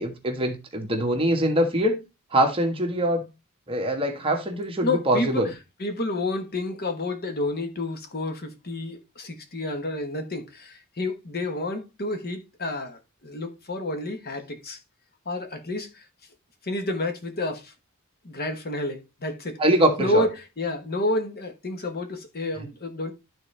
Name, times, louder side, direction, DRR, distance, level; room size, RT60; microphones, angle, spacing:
voice 1, 0.0-2.0 2.3-3.2 3.7-5.5 19.6-20.3, right 1 dB, 25° right, 1.4 m, -23 dB
voice 2, 4.8-5.5 5.8-14.8 15.2-16.0 16.6-17.7 18.2-19.6 20.0-20.3 20.6-23.1, left 2 dB, 45° left, 1.2 m, -29 dB
12.0 x 4.2 x 3.3 m
head